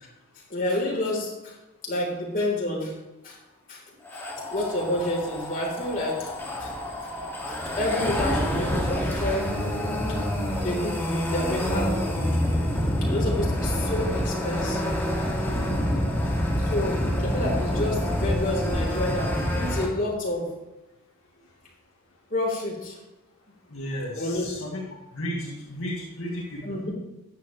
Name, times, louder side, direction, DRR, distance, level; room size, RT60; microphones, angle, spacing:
voice 1, 0.5-1.5 1.8-2.9 3.2-3.4 3.7-3.8 4.1-4.2 4.5-6.3 6.6-6.7 7.0-7.1 7.5-9.5 10.6-15.0 16.7-20.5 22.3-22.9 24.2-24.6 26.6-26.9, left 1 dB, 40° left, -3 dB, 3.7 m, -29 dB
sound 1, 4.0-19.9, equal, 10° left, 2.1 m, -27 dB
voice 2, 23.7-24.8 25.1-26.6, equal, 70° left, -4 dB, 2.0 m, -33 dB
13.5 x 9.7 x 3.2 m, 1.0 s
head